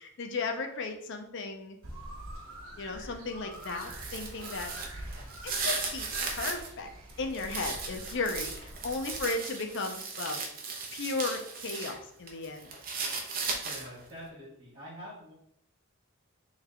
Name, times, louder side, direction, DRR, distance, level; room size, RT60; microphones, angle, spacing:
voice 1, 0.0-1.8 2.8-4.7 5.4-6.9 7.2-10.4 10.9-12.7, left 3 dB, 60° left, 5 dB, 0.5 m, -35 dB
sound 1, 1.8-9.2, right 1 dB, 75° right, 0.9 m, -45 dB
sound 2, 3.5-6.7 7.1-12.0 12.3-14.0, right 4 dB, 45° right, 0.6 m, -36 dB
voice 2, 13.6-15.3, equal, 25° right, -10 dB, 1.5 m, -46 dB
3.2 x 3.2 x 3.6 m, 0.70 s
head